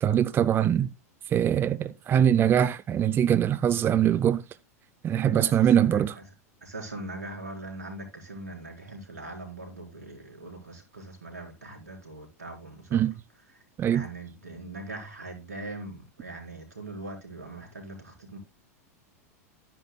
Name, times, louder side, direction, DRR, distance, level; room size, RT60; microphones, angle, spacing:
voice 1, 0.0-0.9 1.3-4.4 5.0-6.1 12.9-13.1 13.8-14.1, right 9 dB, 25° right, 0.5 m, -22 dB
voice 2, 5.2-6.2 6.6-13.0 13.9-18.4, right 2 dB, 90° right, 3.9 m, -41 dB
12.0 x 10.0 x 2.2 m
hypercardioid pair, 100°, 8 cm